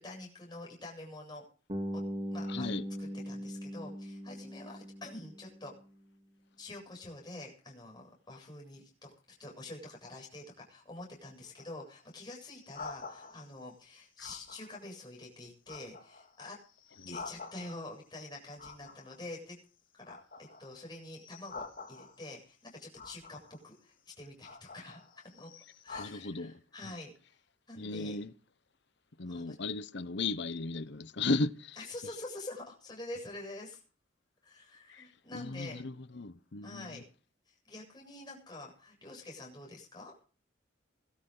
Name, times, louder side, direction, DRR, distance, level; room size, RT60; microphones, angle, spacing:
voice 1, 0.0-1.4 1.9-2.0 2.3-2.7 3.0-5.7 6.6-9.1 9.4-16.6 17.1-19.6 19.9-20.2 20.6-25.5 25.8-27.1 27.7-28.2 29.3-29.6 31.8-33.8 34.4-35.8 36.6-37.0 37.5-40.1, left 2 dB, 20° left, 7.8 m, -46 dB
Bass guitar, 1.7-5.8, equal, 25° right, 3.3 m, -40 dB
voice 2, 2.5-2.8 17.0-17.2 26.0-26.5 27.8-28.3 29.2-31.8 34.9-35.1 35.3-37.0, left 3 dB, 60° left, 1.0 m, -35 dB
sound 1, 11.4-13.6 14.2-14.9 15.3-18.0 18.6-19.7 20.0-22.4 23.0-23.7 24.3-26.1, left 4 dB, 45° left, 3.4 m, -48 dB
22.0 x 13.5 x 4.0 m
head